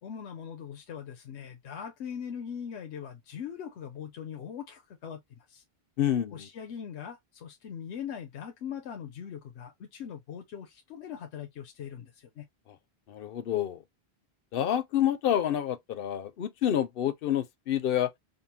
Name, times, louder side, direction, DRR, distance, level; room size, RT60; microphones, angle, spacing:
voice 1, 0.0-5.6 6.3-12.5, left 8 dB, 90° left, 1.0 m, -41 dB
voice 2, 6.0-6.5 13.1-13.8 14.5-18.1, left 10 dB, 65° left, 0.7 m, -28 dB
5.2 x 2.2 x 2.7 m
omnidirectional pair, 1.1 m